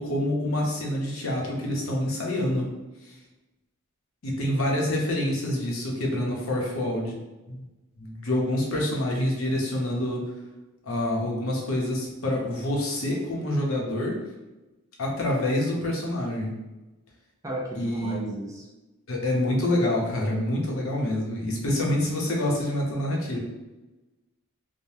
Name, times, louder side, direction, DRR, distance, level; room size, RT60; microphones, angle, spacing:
voice 1, 0.0-2.7 4.2-7.2 7.5-7.6 8.0-10.2 10.9-14.1 15.0-16.5 17.8-18.2 19.1-23.4, left 1 dB, 80° left, -1 dB, 0.7 m, -27 dB
voice 2, 17.4-18.7, right 1 dB, 15° right, -3 dB, 0.4 m, -34 dB
3.3 x 2.1 x 2.7 m, 1.1 s
head